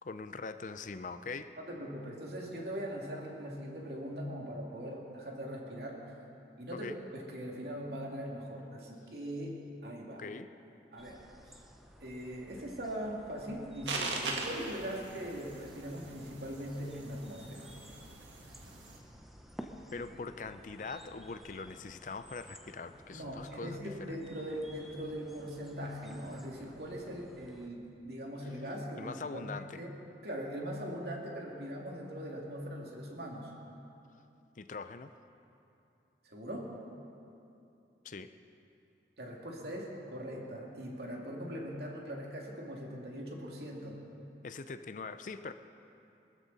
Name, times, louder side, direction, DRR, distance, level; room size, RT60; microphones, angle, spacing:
voice 1, 0.0-1.5 6.7-7.0 10.2-10.5 19.9-24.2 29.0-29.8 34.6-35.1 38.0-38.3 44.4-45.5, left 4 dB, 45° left, 11 dB, 0.5 m, -42 dB
voice 2, 1.6-6.1 6.6-10.2 10.9-11.6 12.0-17.7 23.1-29.9 30.2-33.5 36.2-36.7 39.2-44.0, equal, 65° right, -1 dB, 2.5 m, -41 dB
sound 1, 11.0-27.7, equal, ahead, 0.8 m, -54 dB
sound 2, 13.9-19.0, right 3 dB, 85° right, 1.8 m, -41 dB
22.0 x 13.5 x 4.1 m, 2.7 s
head